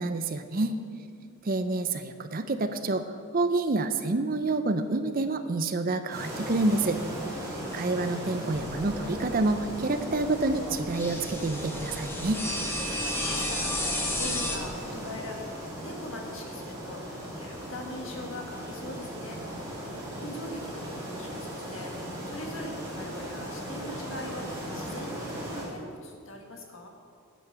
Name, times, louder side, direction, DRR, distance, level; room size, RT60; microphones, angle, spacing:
voice 1, 0.0-0.8 1.4-3.1 3.3-7.0 7.7-12.4, right 2 dB, 40° right, 9 dB, 0.5 m, -28 dB
voice 2, 0.5-1.3 12.9-15.5 15.8-19.7 20.2-26.9, left 1 dB, 60° left, 1 dB, 1.8 m, -42 dB
sound 1, 6.1-25.6, equal, 15° right, 2.8 m, -38 dB
sound 2, 8.5-14.6, left 1 dB, 10° left, 1.0 m, -33 dB
9.5 x 8.8 x 6.7 m, 2.3 s
head